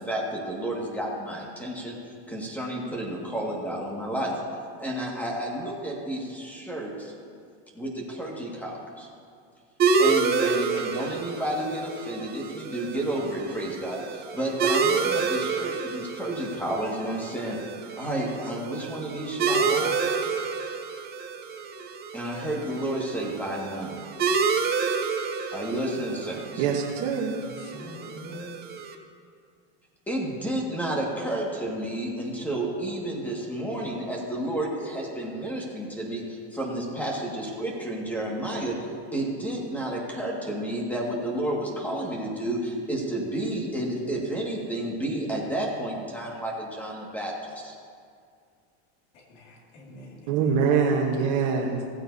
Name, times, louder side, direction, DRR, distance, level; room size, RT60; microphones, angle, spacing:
voice 1, 0.0-2.0 2.3-4.3 4.8-7.1 7.7-9.1 10.0-17.6 18.0-20.0 22.1-24.0 25.5-26.7 30.1-47.7, right 1 dB, 5° left, -2 dB, 1.9 m, -31 dB
sound 1, 9.8-28.9, right 5 dB, 30° right, 0.7 m, -29 dB
voice 2, 26.6-27.4 50.3-51.8, right 6 dB, 55° right, -1 dB, 1.2 m, -24 dB
voice 3, 27.4-28.5 49.1-50.5, left 1 dB, 85° left, -1 dB, 2.5 m, -45 dB
15.5 x 8.8 x 2.8 m, 2.2 s
supercardioid pair, 130°, 35 cm